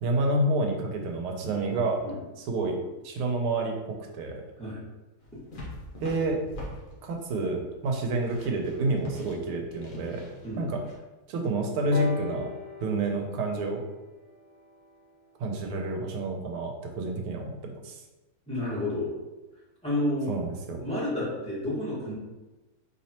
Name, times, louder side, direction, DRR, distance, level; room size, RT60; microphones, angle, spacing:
voice 1, 0.0-2.0 2.4-2.8 3.0-3.8 4.1-4.4 6.0-6.4 7.0-10.2 10.6-10.8 11.3-12.5 12.8-13.8 15.4-18.0 20.3-20.8, right 2 dB, 85° right, 2 dB, 1.6 m, -29 dB
sound 1, 5.2-11.0, left 1 dB, 50° left, 1.1 m, -43 dB
sound 2, 11.9-15.7 16.7-16.8, left 2 dB, 70° left, 1.5 m, -40 dB
voice 2, 18.5-19.1 19.8-20.4 20.7-22.1, left 1 dB, 5° left, -9 dB, 0.9 m, -30 dB
4.1 x 3.5 x 2.9 m, 1.1 s
omnidirectional pair, 2.3 m